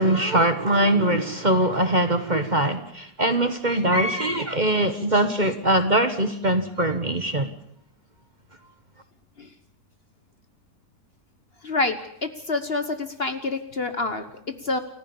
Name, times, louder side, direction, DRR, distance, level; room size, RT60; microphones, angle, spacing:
voice 1, 0.0-7.5, right 1 dB, 30° right, 9 dB, 1.4 m, -22 dB
voice 2, 11.6-14.8, left 3 dB, 40° left, 9 dB, 1.3 m, -27 dB
29.5 x 14.5 x 7.2 m, 0.70 s
omnidirectional pair, 1.8 m